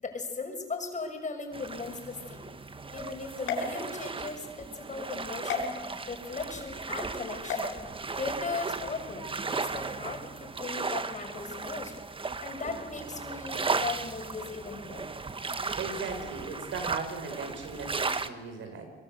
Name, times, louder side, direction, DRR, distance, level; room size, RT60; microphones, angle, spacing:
voice 1, 0.0-2.5 2.9-5.7 6.0-7.7 8.2-11.9 12.4-15.1, left 4 dB, 40° left, 4 dB, 6.8 m, -37 dB
sound 1, 1.5-18.3, right 4 dB, 25° right, 1.5 m, -36 dB
sound 2, 3.4-4.4 5.5-5.6 7.4-7.7, left 5 dB, 90° left, 5.3 m, -33 dB
voice 2, 15.7-18.8, right 4 dB, 75° right, 6 dB, 6.3 m, -37 dB
26.5 x 22.0 x 8.2 m, 1.5 s
cardioid pair, 90°, 20 cm